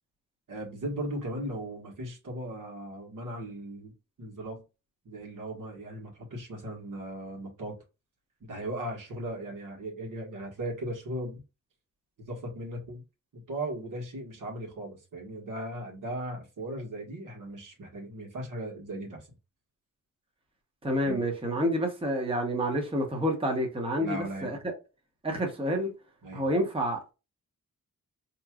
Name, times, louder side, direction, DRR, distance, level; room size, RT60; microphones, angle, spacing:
voice 1, 0.5-4.6 5.0-7.7 8.4-11.4 12.2-13.0 13.3-19.3 21.0-21.2 24.0-24.6 26.2-26.5, right 1 dB, 75° right, 1.6 m, -37 dB
voice 2, 20.8-24.7 25.2-25.9 26.3-27.1, equal, 15° right, 0.9 m, -29 dB
4.5 x 3.0 x 2.4 m
wide cardioid pair, 140°, 32 cm